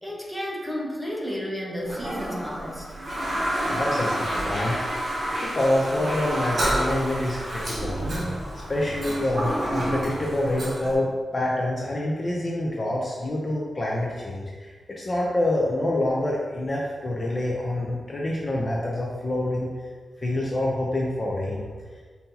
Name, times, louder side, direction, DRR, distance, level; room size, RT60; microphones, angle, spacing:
voice 1, 0.0-2.9, equal, 5° left, -4 dB, 0.8 m, -32 dB
Toilet flush, 1.8-11.0, right 1 dB, 40° right, 1.0 m, -29 dB
voice 2, 3.7-4.9 5.4-8.0 8.7-19.7 20.2-21.6, left 1 dB, 30° left, -3 dB, 0.5 m, -26 dB
5.6 x 2.7 x 2.8 m, 1.5 s
wide cardioid pair, 130°, 0 cm